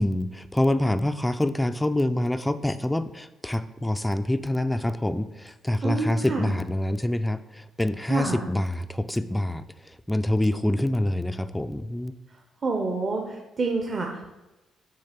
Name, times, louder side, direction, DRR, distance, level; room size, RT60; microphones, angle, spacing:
voice 1, 0.0-12.1, left 1 dB, 10° left, 10 dB, 0.3 m, -26 dB
voice 2, 5.8-6.5 8.1-8.5 12.6-14.3, right 3 dB, 40° right, 1 dB, 0.8 m, -28 dB
6.6 x 3.4 x 5.8 m, 1.0 s
cardioid pair, 90°, 0 cm